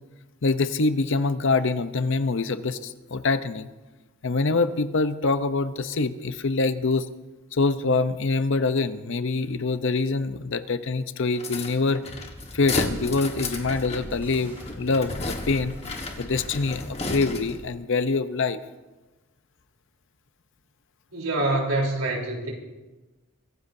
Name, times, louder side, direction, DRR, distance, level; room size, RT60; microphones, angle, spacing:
voice 1, 0.4-3.7 4.2-7.1 7.5-12.0 12.5-15.7 16.2-18.6, left 3 dB, 60° left, 12 dB, 0.7 m, -25 dB
sound 1, 11.4-17.7, left 3 dB, 30° left, 1.4 m, -33 dB
sound 2, 12.0-16.9, equal, 10° right, 3.9 m, -43 dB
voice 2, 21.1-22.5, right 2 dB, 85° right, -1 dB, 3.6 m, -25 dB
23.0 x 15.5 x 2.7 m, 1.1 s
head